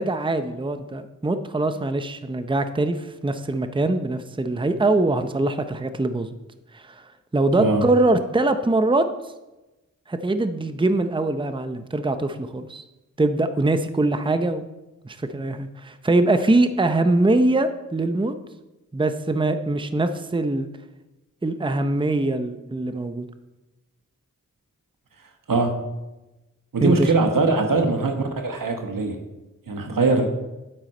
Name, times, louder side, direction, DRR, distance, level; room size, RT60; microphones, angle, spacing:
voice 1, 0.0-6.3 6.7-7.0 7.3-9.1 10.1-12.8 13.2-14.7 15.1-18.3 18.9-20.7 21.4-23.3 26.8-27.1, right 2 dB, 15° right, 9 dB, 0.7 m, -23 dB
voice 2, 25.5-25.8 26.7-29.2 29.7-30.3, right 3 dB, 80° right, 5 dB, 1.4 m, -21 dB
9.3 x 7.7 x 4.4 m, 1.0 s
cardioid pair, 50°, 32 cm